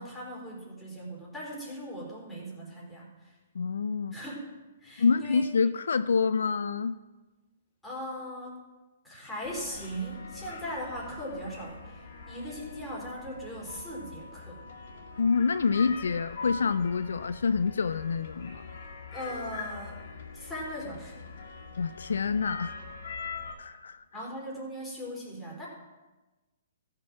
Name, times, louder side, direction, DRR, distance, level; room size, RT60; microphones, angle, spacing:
voice 1, 0.0-3.3 4.1-4.5 4.8-5.4 7.8-8.6 9.0-14.6 19.1-20.0 20.3-21.2 24.1-25.7, equal, 5° left, -5 dB, 4.2 m, -39 dB
voice 2, 3.5-4.2 5.0-7.0 15.2-18.7 21.8-22.8 23.6-24.0, left 5 dB, 75° left, 14 dB, 0.4 m, -27 dB
sound 1, 9.4-23.5, left 4 dB, 60° left, 2.5 m, -43 dB
14.5 x 6.7 x 6.0 m, 1.2 s
hypercardioid pair, 130°, 0 cm